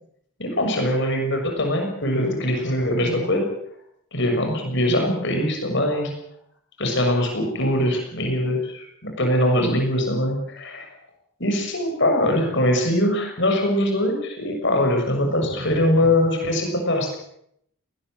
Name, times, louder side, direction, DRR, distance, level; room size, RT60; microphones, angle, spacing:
voice 1, 0.4-3.5 4.1-6.1 6.8-10.9 11.4-17.2, left 1 dB, 55° left, 4 dB, 6.4 m, -22 dB
20.0 x 19.5 x 7.8 m, 0.72 s
head